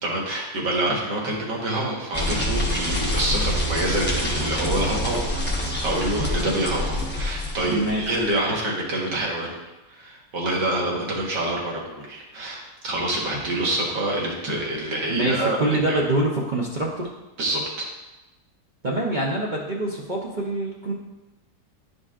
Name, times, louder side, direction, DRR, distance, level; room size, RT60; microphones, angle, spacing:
voice 1, 0.0-5.3 5.8-9.6 9.9-15.6 15.9-16.0 17.4-17.9, right 1 dB, 75° right, -2 dB, 2.0 m, -26 dB
sound 1, 2.1-8.4, left 1 dB, 10° left, 0.5 m, -26 dB
voice 2, 7.6-8.1 15.1-17.1 18.8-20.9, right 1 dB, 45° right, -4 dB, 0.6 m, -25 dB
11.0 x 5.2 x 2.5 m, 1.0 s
omnidirectional pair, 1.9 m